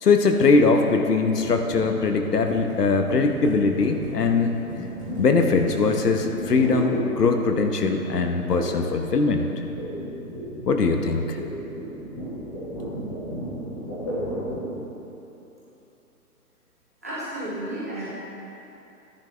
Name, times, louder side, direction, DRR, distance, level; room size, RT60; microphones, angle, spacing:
voice 1, 0.0-4.5 5.2-9.5 10.7-11.4, left 4 dB, 85° left, 5 dB, 1.2 m, -21 dB
sound 1, 1.4-7.7 8.5-8.9 9.1-14.8, equal, 15° left, 1.3 m, -33 dB
voice 2, 17.0-18.0, right 1 dB, 10° right, -11 dB, 0.9 m, -32 dB
11.0 x 10.5 x 3.4 m, 2.9 s
hypercardioid pair, 175°, 46 cm